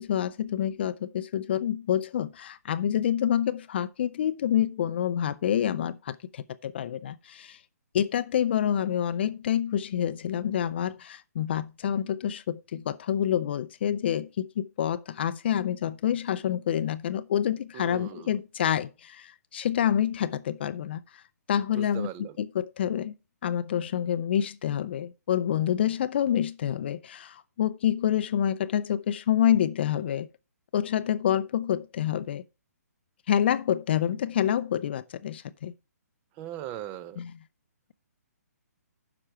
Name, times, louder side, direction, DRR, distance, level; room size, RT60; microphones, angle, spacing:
voice 1, 0.0-7.6 7.9-21.2 21.5-22.1 22.4-23.1 23.4-30.3 30.7-32.4 33.3-35.7 37.2-37.3, left 10 dB, 40° left, 0.5 m, -27 dB
voice 2, 17.7-18.4 21.7-22.4 36.3-37.2, right 12 dB, 20° right, 0.5 m, -39 dB
9.9 x 5.9 x 4.5 m
hypercardioid pair, 160°, 9 cm